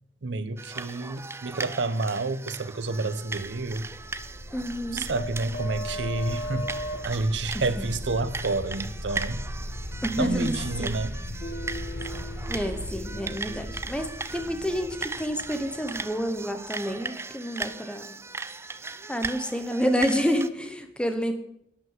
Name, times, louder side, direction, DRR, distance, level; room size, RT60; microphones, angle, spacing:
voice 1, 0.2-3.9 4.9-9.4 10.2-11.2, right 3 dB, 80° right, 0.7 m, -29 dB
sound 1, 0.6-20.5, right 3 dB, 15° right, 0.4 m, -38 dB
sound 2, 3.2-16.7, equal, 55° left, 1.9 m, -37 dB
voice 2, 4.5-5.1 7.5-7.9 10.0-11.0 12.5-18.2 19.1-21.3, equal, 5° left, 1.0 m, -29 dB
11.5 x 5.7 x 7.4 m
head